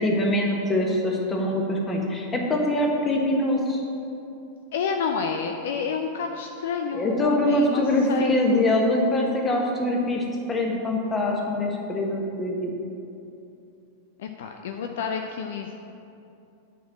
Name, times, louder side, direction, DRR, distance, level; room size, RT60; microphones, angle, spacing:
voice 1, 0.0-3.8 6.9-10.2 10.5-12.7, left 1 dB, 20° left, 0 dB, 1.4 m, -23 dB
voice 2, 4.7-8.4 14.2-15.7, left 6 dB, 55° left, 4 dB, 0.5 m, -29 dB
9.2 x 4.5 x 7.3 m, 2.7 s
figure-of-eight pair, 90°, 0 cm